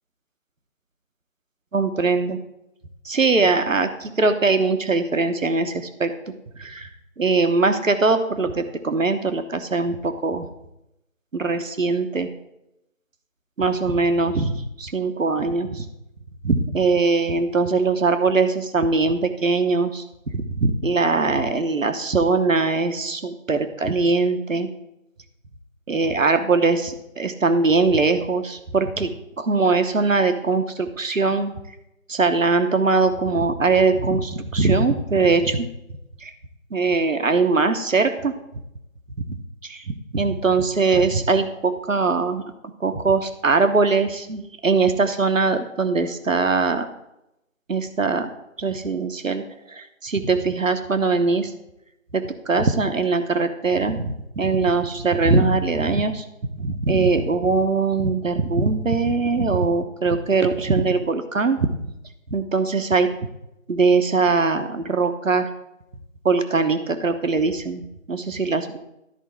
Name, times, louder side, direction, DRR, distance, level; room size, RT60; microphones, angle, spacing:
voice 1, 1.7-2.4 3.0-6.9 7.2-10.5 11.3-12.3 13.6-15.8 16.4-20.0 20.3-24.7 25.9-29.1 29.4-31.5 32.1-35.7 36.2-36.3 36.7-38.3 39.3-39.4 39.6-39.8 40.1-42.4 42.8-46.9 47.7-48.3 48.6-51.5 52.1-56.2 56.6-61.8 62.3-63.1 63.7-65.5 66.2-68.8, right 3 dB, 70° right, 8 dB, 1.1 m, -21 dB
13.0 x 4.6 x 4.5 m, 0.86 s
figure-of-eight pair, 160°, 41 cm